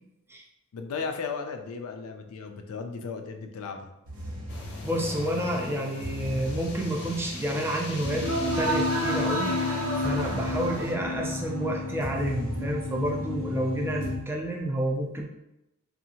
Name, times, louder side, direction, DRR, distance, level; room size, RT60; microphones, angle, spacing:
voice 1, 0.7-3.9, left 5 dB, 85° left, 5 dB, 0.4 m, -35 dB
sound 1, 4.1-14.2, left 1 dB, 85° right, 0.8 m, -31 dB
sound 2, 4.5-10.9, left 2 dB, 50° left, 0.7 m, -42 dB
voice 2, 4.8-8.3 8.6-9.6 10.0-15.2, right 1 dB, 10° right, 0 dB, 0.3 m, -29 dB
2.7 x 2.4 x 2.8 m, 0.87 s
head